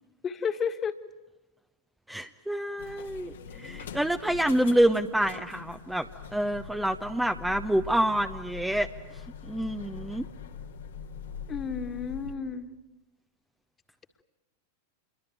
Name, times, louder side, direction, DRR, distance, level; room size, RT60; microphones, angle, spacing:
voice 1, 0.2-1.0 11.5-12.7, left 6 dB, 25° left, 9 dB, 1.9 m, -32 dB
voice 2, 2.1-10.3, right 1 dB, 5° right, 6 dB, 0.9 m, -27 dB
sound 1, 2.8-12.3, left 7 dB, 65° left, 1.9 m, -43 dB
28.5 x 22.5 x 9.2 m, 1.0 s
figure-of-eight pair, 90°, 0 cm